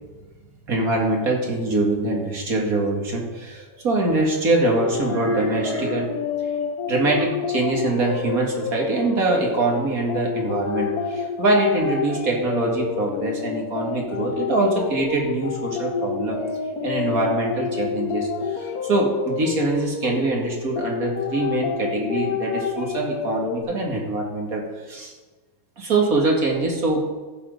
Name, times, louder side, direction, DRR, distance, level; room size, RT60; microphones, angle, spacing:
voice 1, 0.7-6.1 6.9-16.4 16.8-25.1 25.8-27.0, right 2 dB, 45° right, 0 dB, 2.4 m, -23 dB
sound 1, 4.6-23.6, left 7 dB, 55° left, 1.4 m, -29 dB
14.5 x 6.6 x 5.3 m, 1.3 s
omnidirectional pair, 2.1 m